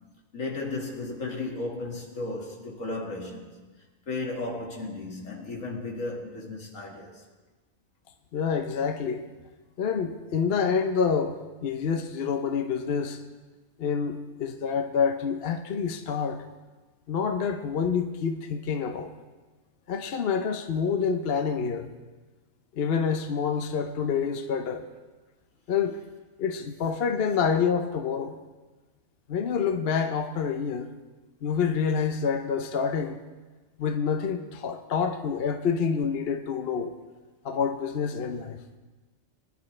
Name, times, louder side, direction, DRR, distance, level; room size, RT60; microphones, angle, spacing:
voice 1, 0.3-3.6 4.1-7.2, left 2 dB, 80° left, 2.4 m, -34 dB
voice 2, 8.3-9.3 9.8-13.2 13.8-16.4 17.1-19.1 19.9-21.9 22.7-24.9 25.7-26.0 26.4-28.4 29.3-30.9 31.4-33.2 33.8-36.9 37.4-38.6, left 6 dB, 55° left, 0.9 m, -27 dB
22.5 x 11.0 x 3.2 m
omnidirectional pair, 1.3 m